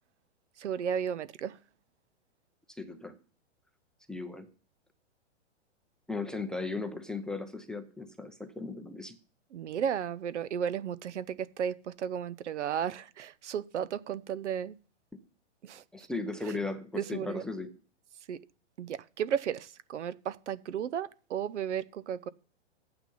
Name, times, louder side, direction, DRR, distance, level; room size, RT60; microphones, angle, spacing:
voice 1, 0.6-1.6 9.5-14.7 15.6-15.8 16.9-17.4 18.3-18.4 18.8-22.3, right 8 dB, 80° right, 0.7 m, -34 dB
voice 2, 2.8-3.2 4.1-4.5 6.1-9.2 15.9-17.7, left 3 dB, ahead, 0.5 m, -36 dB
9.7 x 9.0 x 5.4 m
hypercardioid pair, 135°, 35 cm